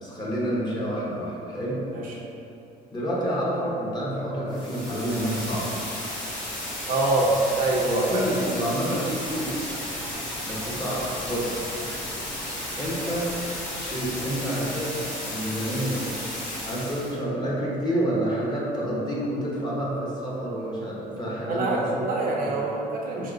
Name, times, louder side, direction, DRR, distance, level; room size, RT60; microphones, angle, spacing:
voice 1, 0.0-1.8 2.9-5.7 6.1-6.2 7.9-9.6 10.4-11.7 12.8-13.4 13.8-16.1 16.6-22.0 22.4-22.5, right 1 dB, 25° left, -6 dB, 0.9 m, -28 dB
sound 1, 4.5-17.2, left 1 dB, 50° left, 1.2 m, -34 dB
voice 2, 6.8-7.3 7.6-8.3 21.5-23.3, right 2 dB, 55° right, -3 dB, 0.6 m, -25 dB
sound 2, 9.3-14.4, equal, 10° left, 0.4 m, -44 dB
4.5 x 2.9 x 2.5 m, 2.8 s
cardioid pair, 110°, 17 cm